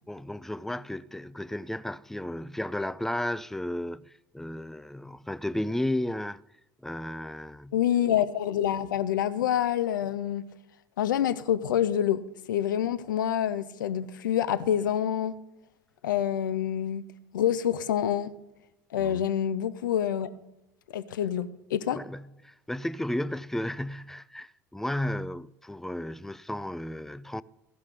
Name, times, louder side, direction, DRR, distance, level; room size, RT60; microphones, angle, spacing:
voice 1, 0.1-6.4 6.8-7.8 19.0-19.3 21.9-27.4, left 1 dB, 5° left, 0.4 m, -33 dB
voice 2, 7.7-10.4 11.0-12.2 12.5-15.4 16.0-17.0 17.3-18.3 18.9-20.3 20.9-22.0, left 10 dB, 80° left, 0.5 m, -27 dB
15.0 x 5.7 x 6.5 m
hypercardioid pair, 70°, 10 cm